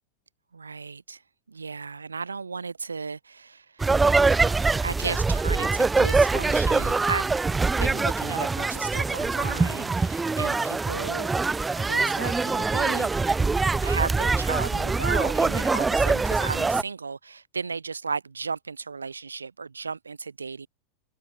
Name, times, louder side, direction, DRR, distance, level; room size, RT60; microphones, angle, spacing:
voice 1, 0.5-1.2 1.5-3.9 4.3-7.4 7.7-11.3 11.7-13.1 13.8-20.7, right 5 dB, 75° right, 5.4 m, -34 dB
sound 1, 3.8-16.8, right 3 dB, 10° right, 0.4 m, -24 dB
open air
figure-of-eight pair, 90°, 0 cm